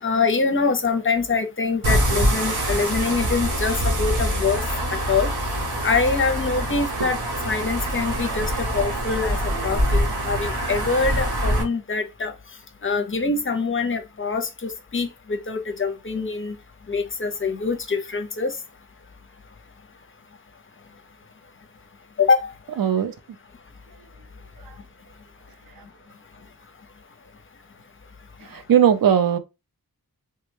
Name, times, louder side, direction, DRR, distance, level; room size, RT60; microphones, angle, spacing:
voice 1, 0.0-4.6 4.9-5.3 5.8-7.2 7.4-9.4 9.6-12.3 12.8-16.6 16.9-18.5 22.2-22.5, left 4 dB, 35° left, 0.5 m, -24 dB
sound 1, 1.8-11.6, equal, 90° right, 1.4 m, -24 dB
voice 2, 22.8-23.1 24.6-24.7 25.8-25.9 28.4-29.4, right 9 dB, 70° right, 0.5 m, -19 dB
3.3 x 2.1 x 3.1 m
wide cardioid pair, 125°, 37 cm